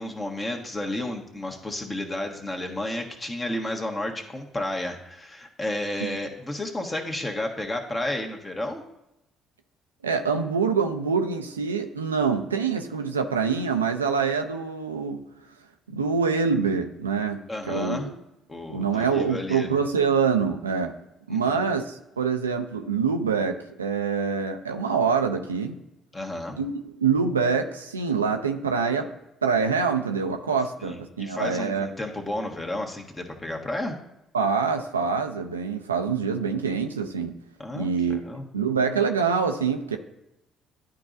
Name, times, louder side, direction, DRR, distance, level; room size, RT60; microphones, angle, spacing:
voice 1, 0.0-8.8 17.5-18.1 18.5-19.7 21.3-21.6 26.1-26.6 30.8-33.9 37.6-38.5, left 1 dB, 25° left, 2 dB, 1.4 m, -32 dB
voice 2, 10.0-15.2 15.9-17.4 17.7-18.1 18.7-20.9 21.3-25.8 26.6-29.1 29.4-31.9 34.3-37.4 37.7-38.2 38.5-40.0, right 5 dB, 90° right, 5 dB, 0.4 m, -25 dB
11.5 x 3.9 x 2.6 m, 0.88 s
hypercardioid pair, 50°, 0 cm